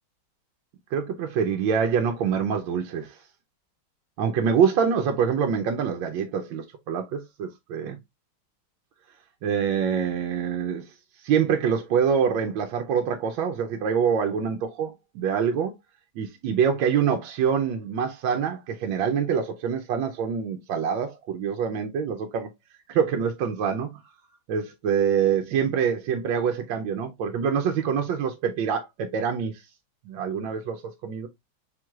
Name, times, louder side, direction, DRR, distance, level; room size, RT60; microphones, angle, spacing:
voice 1, 0.9-3.2 4.2-8.0 9.4-10.8 11.2-15.7 16.2-22.5 22.9-23.9 24.5-29.5 30.1-31.3, right 7 dB, 75° right, 1.3 m, -25 dB
4.6 x 4.5 x 2.3 m
omnidirectional pair, 2.2 m